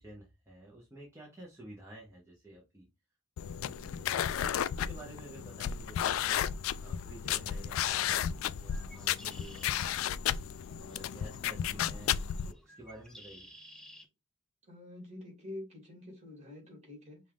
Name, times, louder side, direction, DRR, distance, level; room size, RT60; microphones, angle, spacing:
voice 1, 0.0-2.9 3.4-4.3 4.7-12.1 12.4-13.5, right 1 dB, 15° right, 0.8 m, -52 dB
sound 1, 3.4-12.5, left 10 dB, 90° left, 0.3 m, -33 dB
Bird, 8.6-14.1, equal, 5° left, 0.5 m, -56 dB
voice 2, 11.7-12.2 14.7-17.2, left 2 dB, 30° right, 2.2 m, -47 dB
5.3 x 2.4 x 3.4 m
head